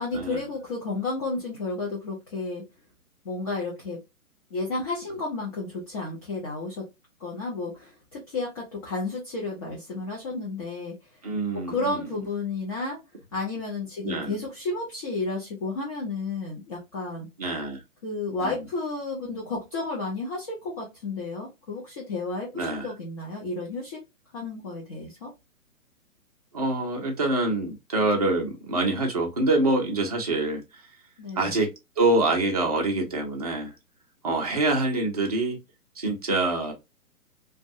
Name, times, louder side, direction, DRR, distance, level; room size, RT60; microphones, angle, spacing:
voice 1, 0.0-2.6 3.2-4.0 4.5-6.9 7.2-11.0 11.5-13.0 13.3-17.3 18.0-24.0 24.3-25.3 31.2-31.6, left 3 dB, 25° left, 0.6 m, -32 dB
voice 2, 11.2-12.0 14.0-14.3 17.4-17.8 18.4-18.6 22.5-22.9 26.5-30.6 31.4-31.7 32.0-33.7 34.2-35.6 36.0-36.7, right 2 dB, 30° right, 0.4 m, -25 dB
2.5 x 2.2 x 2.6 m
figure-of-eight pair, 130°, 44 cm